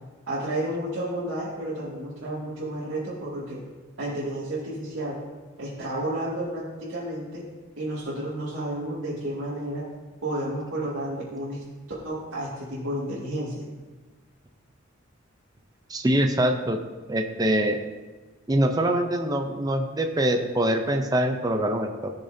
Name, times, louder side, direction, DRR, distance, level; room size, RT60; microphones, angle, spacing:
voice 1, 0.3-3.6 4.0-5.2 5.6-7.4 7.8-9.8 10.2-11.6 12.0-13.6, right 1 dB, 75° right, -10 dB, 2.3 m, -31 dB
voice 2, 15.9-16.8 17.1-17.8 18.5-22.1, right 1 dB, 20° right, 4 dB, 0.6 m, -24 dB
15.5 x 6.7 x 2.7 m, 1.3 s
head